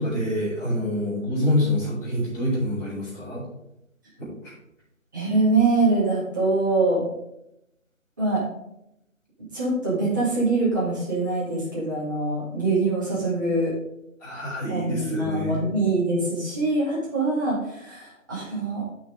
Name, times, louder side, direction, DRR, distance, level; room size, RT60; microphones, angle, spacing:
voice 1, 0.0-3.4 4.4-4.5 14.2-15.6, left 1 dB, 5° left, -19 dB, 2.9 m, -26 dB
voice 2, 5.1-7.0 8.2-8.5 9.5-13.7 14.7-18.8, right 2 dB, 15° right, -9 dB, 2.2 m, -24 dB
12.0 x 5.9 x 3.7 m, 0.81 s
figure-of-eight pair, 175°, 40 cm